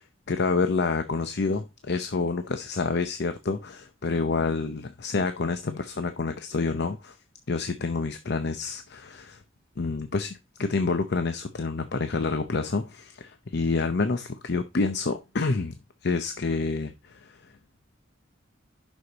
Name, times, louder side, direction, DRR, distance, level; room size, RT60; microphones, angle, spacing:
voice 1, 0.3-7.2 7.5-9.4 9.8-15.8 16.0-17.5, left 4 dB, 55° left, 0.7 m, -28 dB
9.7 x 6.3 x 4.0 m
head